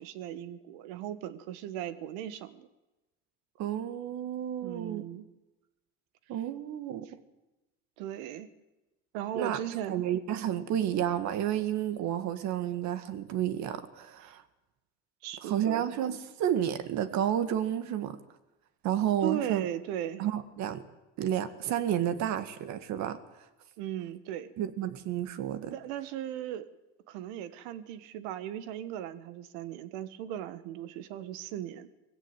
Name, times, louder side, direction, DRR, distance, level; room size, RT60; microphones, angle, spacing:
voice 1, 0.0-2.7 4.6-5.2 8.0-8.5 9.1-10.0 14.2-14.4 15.2-15.9 19.2-20.2 23.8-24.5 25.7-26.7 27.1-31.9, right 11 dB, 80° right, 13 dB, 1.5 m, -37 dB
voice 2, 3.6-5.0 6.3-7.1 9.3-9.6 9.9-14.4 15.4-18.2 18.8-19.7 20.2-20.8 21.2-23.2 24.6-25.8, right 10 dB, 65° right, 11 dB, 2.0 m, -31 dB
21.0 x 16.0 x 8.1 m, 1.0 s
supercardioid pair, 90°, 31 cm